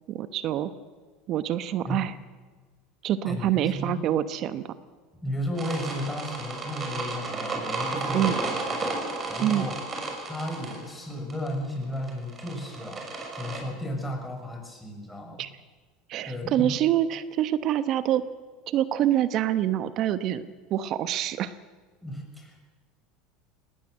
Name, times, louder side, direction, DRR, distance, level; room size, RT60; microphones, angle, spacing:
voice 1, 0.1-0.7 1.3-2.1 3.0-4.6 8.1-8.4 9.4-9.7 15.4-15.5 16.1-18.2 18.7-20.4 20.7-21.5, right 11 dB, 50° right, 14 dB, 1.0 m, -26 dB
voice 2, 3.3-4.0 5.2-8.9 9.3-9.8 10.3-13.0 13.3-15.5 16.2-16.7 22.0-22.6, left 1 dB, 5° left, 1 dB, 6.3 m, -34 dB
sound 1, 5.6-13.6, right 3 dB, 30° right, 6.4 m, -33 dB
19.5 x 18.5 x 7.9 m, 1.4 s
hypercardioid pair, 90°, 0 cm